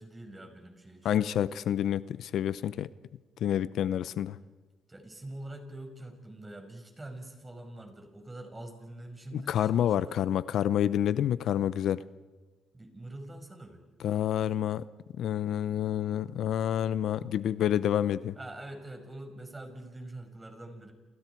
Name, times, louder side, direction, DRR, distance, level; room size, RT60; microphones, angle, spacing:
voice 1, 0.0-1.3 4.9-10.2 12.7-13.8 18.4-20.9, right 1 dB, 20° right, 4 dB, 5.4 m, -45 dB
voice 2, 1.0-2.9 3.4-4.4 9.3-12.0 14.0-14.8 15.2-18.3, left 10 dB, 75° left, 16 dB, 0.6 m, -28 dB
30.0 x 29.0 x 4.7 m, 1.3 s
cardioid pair, 90°, 0 cm